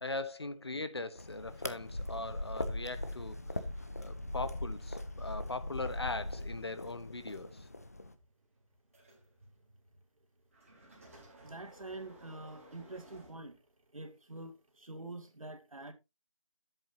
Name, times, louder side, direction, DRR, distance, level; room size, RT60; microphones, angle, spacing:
voice 1, 0.0-3.4 4.0-7.5, left 3 dB, 50° left, 1.1 m, -40 dB
sound 1, 1.2-8.1, left 1 dB, 30° left, 0.6 m, -40 dB
sound 2, 3.4-14.0 14.7-14.8, right 1 dB, 25° right, 2.8 m, -61 dB
voice 2, 11.4-13.6 13.9-15.9, right 2 dB, 90° right, 2.1 m, -46 dB
10.5 x 7.9 x 2.8 m
figure-of-eight pair, 175°, 17 cm